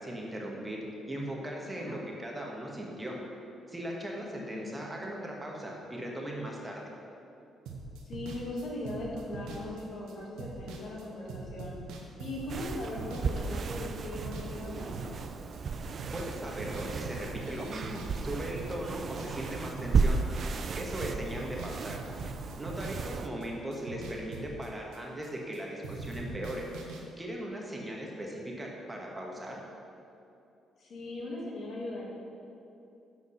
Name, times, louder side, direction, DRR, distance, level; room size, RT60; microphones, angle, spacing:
voice 1, 0.0-3.1 3.7-6.8 16.1-20.2 20.8-22.0 22.6-26.6 27.2-29.6, right 1 dB, 15° right, -2 dB, 1.3 m, -38 dB
voice 2, 1.7-2.0 4.1-4.8 8.0-11.8 12.2-15.1 23.3-23.4 30.8-32.0, left 1 dB, 60° left, -4 dB, 2.0 m, -39 dB
sound 1, 7.7-16.3 16.6-20.7 21.0-25.6 25.8-27.0, right 3 dB, 90° right, 1.0 m, -43 dB
sound 2, 12.5-23.3, right 4 dB, 50° right, 0.4 m, -34 dB
7.9 x 4.7 x 5.5 m, 2.7 s
cardioid pair, 90°, 0 cm